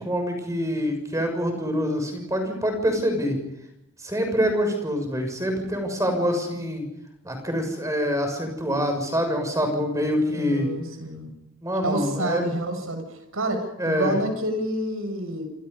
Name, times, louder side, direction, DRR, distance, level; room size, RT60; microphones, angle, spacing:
voice 1, 0.0-3.4 4.0-6.8 7.2-10.7 11.6-12.4 13.8-14.1, equal, 15° right, 5 dB, 6.5 m, -25 dB
voice 2, 10.3-11.3 11.8-15.5, right 1 dB, 85° right, 6 dB, 6.5 m, -28 dB
28.0 x 25.5 x 5.5 m, 0.82 s
head